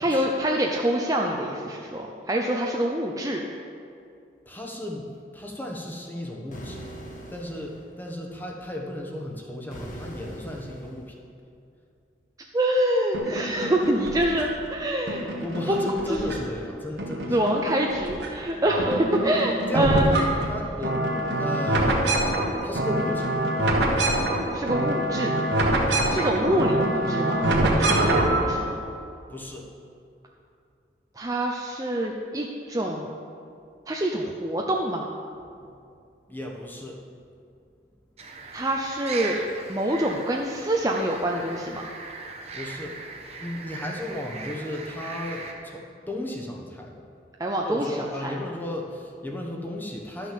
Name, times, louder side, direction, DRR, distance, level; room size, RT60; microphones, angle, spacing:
voice 1, 0.0-3.4 12.5-15.3 15.7-16.3 17.3-20.1 24.5-25.4 26.1-28.8 31.2-33.2 33.9-35.1 38.5-39.4 39.7-41.9 47.4-48.3, right 1 dB, 20° right, 0 dB, 0.6 m, -26 dB
voice 2, 4.4-5.1 5.3-6.8 7.3-11.2 15.4-17.5 19.7-20.2 20.5-21.0 21.3-22.0 22.6-23.3 25.8-26.2 29.3-29.7 35.6-35.7 36.3-37.0 42.5-43.0 43.4-45.8 46.1-47.0 47.6-50.3, left 1 dB, 10° left, 0 dB, 1.2 m, -34 dB
sound 1, 6.5-7.9 9.7-11.1, equal, 45° left, 1.4 m, -41 dB
sound 2, 13.1-14.6 15.1-16.7 17.0-18.3 18.6-28.5, right 1 dB, 80° right, 1.5 m, -25 dB
sound 3, 38.2-45.5, right 4 dB, 35° right, 1.1 m, -39 dB
12.0 x 6.3 x 6.9 m, 2.4 s
head